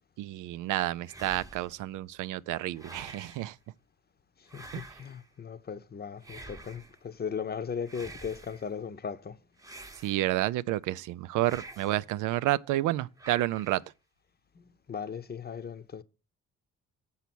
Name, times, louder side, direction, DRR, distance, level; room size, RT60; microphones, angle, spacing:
voice 1, 0.2-3.6 4.7-4.8 10.0-13.8, right 15 dB, 90° right, 0.5 m, -30 dB
sound 1, 1.0-1.8 2.7-3.5 4.5-5.3 6.2-7.0 7.8-8.7 9.6-10.5 11.4-12.1 13.2-13.9, right 2 dB, 10° right, 0.9 m, -48 dB
voice 2, 5.0-9.4 14.9-16.0, left 6 dB, 30° left, 0.7 m, -37 dB
7.0 x 5.6 x 6.0 m
cardioid pair, 90°, 30 cm